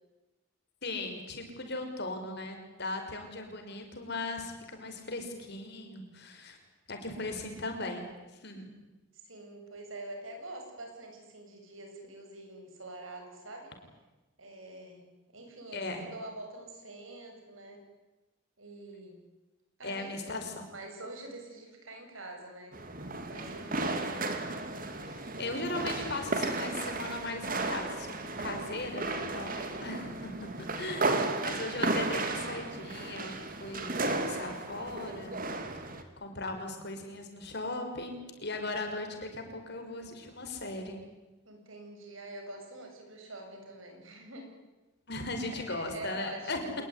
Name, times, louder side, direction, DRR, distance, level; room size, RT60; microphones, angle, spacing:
voice 1, 0.8-6.6 6.9-8.0 8.3-8.7 15.7-16.0 19.8-20.7 25.0-31.1 31.4-35.4 36.2-41.0 45.1-46.6, left 2 dB, 55° left, 5 dB, 5.5 m, -38 dB
voice 2, 9.1-13.7 14.4-17.8 18.6-19.2 19.8-20.4 20.7-24.2 41.4-44.5 45.7-46.7, right 2 dB, 85° right, 3 dB, 7.9 m, -45 dB
sound 1, 22.7-36.0, right 2 dB, 45° right, 2.6 m, -34 dB
27.0 x 20.5 x 9.8 m, 1.1 s
head